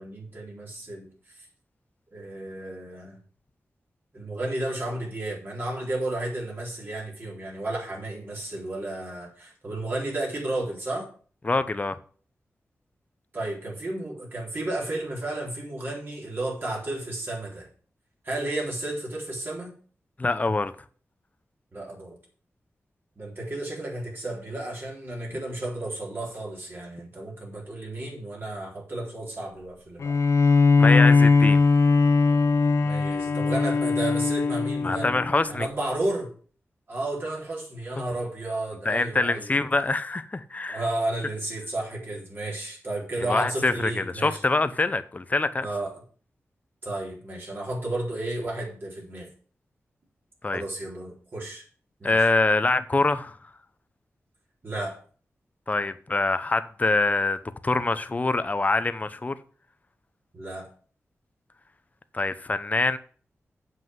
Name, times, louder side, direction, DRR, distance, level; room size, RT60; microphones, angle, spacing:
voice 1, 0.0-1.4 2.1-3.2 4.1-11.1 13.3-17.7 18.2-19.7 21.7-22.2 23.2-30.2 32.8-35.2 35.5-36.3 36.9-39.5 40.7-44.4 45.6-45.9 46.8-49.3 50.5-51.6 52.0-52.3 54.6-55.0 60.3-60.7, right 2 dB, 45° right, 4.0 m, -32 dB
voice 2, 11.4-12.0 20.2-20.7 30.8-31.6 34.8-35.7 38.8-40.8 43.3-45.7 50.4-50.6 52.0-53.4 55.7-57.4 57.6-59.3 62.1-63.0, left 3 dB, 30° left, 0.8 m, -24 dB
Bowed string instrument, 30.0-35.5, left 4 dB, 70° left, 0.8 m, -20 dB
8.0 x 5.6 x 7.8 m
wide cardioid pair, 95°, 5 cm